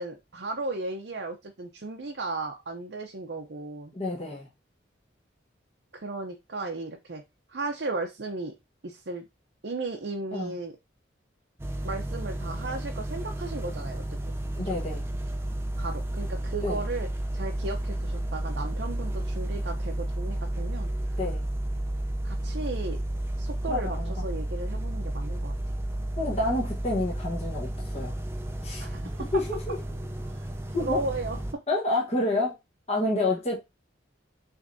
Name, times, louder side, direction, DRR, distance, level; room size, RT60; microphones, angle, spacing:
voice 1, 0.0-3.9 5.9-7.2 7.5-8.5 8.8-9.3 9.6-10.8 11.8-14.7 15.8-17.1 17.3-20.9 22.2-23.0 23.4-25.5 28.8-29.2 30.3-30.5 30.8-31.6, right 2 dB, 60° right, 0.7 m, -35 dB
voice 2, 3.9-4.5 10.3-10.5 14.6-15.0 16.6-16.8 21.2-21.4 23.7-24.1 26.2-28.1 28.6-28.8 29.3-29.7 30.7-31.0 31.7-32.6 32.9-33.6, left 2 dB, 35° left, 1.2 m, -28 dB
sound 1, 11.6-31.5, right 1 dB, 15° right, 0.5 m, -32 dB
6.0 x 3.3 x 2.6 m
head